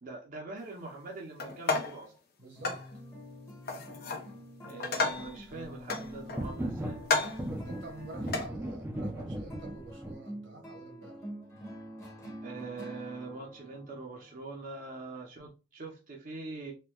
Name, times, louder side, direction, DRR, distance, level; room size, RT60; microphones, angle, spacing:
voice 1, 0.0-2.1 4.6-7.0 12.4-16.7, right 3 dB, 45° right, 0.7 m, -43 dB
sound 1, 1.4-2.0 2.6-2.9 3.7-4.3 4.6-5.4 5.9-6.6 7.0-7.5 8.3-8.5, left 3 dB, 55° left, 0.7 m, -32 dB
voice 2, 2.4-2.8 7.5-11.3, right 3 dB, 90° right, 1.5 m, -48 dB
sound 2, 2.6-15.3, equal, 15° left, 1.1 m, -47 dB
sound 3, 6.4-7.0 7.4-10.1, right 1 dB, 10° right, 0.5 m, -37 dB
4.3 x 2.3 x 2.3 m
head